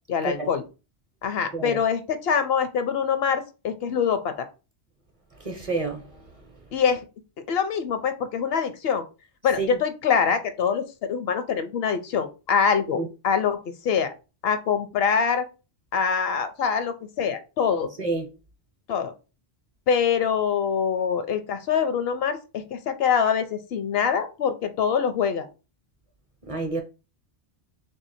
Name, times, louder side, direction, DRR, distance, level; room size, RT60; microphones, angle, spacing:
voice 1, 0.1-0.6 1.2-4.5 6.7-7.0 7.5-9.0 9.4-14.1 14.4-15.5 15.9-17.9 18.9-19.1 19.9-25.5, left 7 dB, 70° left, 0.8 m, -24 dB
voice 2, 5.4-6.0 9.6-9.8 13.0-13.1 18.0-18.2 26.5-26.8, right 3 dB, 40° right, 0.7 m, -28 dB
3.2 x 2.7 x 4.2 m
omnidirectional pair, 1.1 m